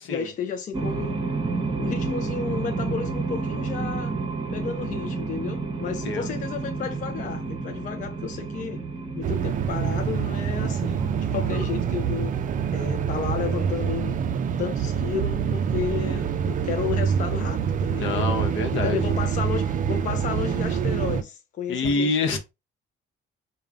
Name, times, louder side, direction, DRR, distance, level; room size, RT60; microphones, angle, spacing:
voice 1, 0.1-1.3 1.8-4.2 4.5-8.8 9.1-12.4 12.7-14.2 14.6-18.3 18.7-22.4, left 7 dB, 40° left, 0.4 m, -32 dB
sound 1, 0.7-11.7, right 3 dB, 20° right, 0.8 m, -31 dB
voice 2, 5.8-6.3 17.9-19.0 21.7-22.4, left 3 dB, 70° left, 0.9 m, -26 dB
sound 2, 9.2-21.2, right 7 dB, 40° right, 0.4 m, -26 dB
3.7 x 2.2 x 3.3 m
cardioid pair, 105°, 21 cm